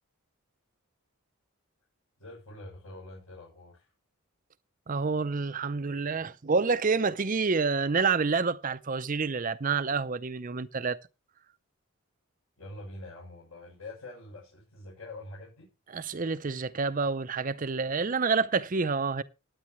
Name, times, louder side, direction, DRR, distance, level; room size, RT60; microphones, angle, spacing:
voice 1, 2.2-3.9 12.6-15.7, left 2 dB, 75° left, 7.1 m, -45 dB
voice 2, 4.9-11.0 15.9-19.2, right 4 dB, 35° right, 0.5 m, -28 dB
16.0 x 9.8 x 3.1 m
head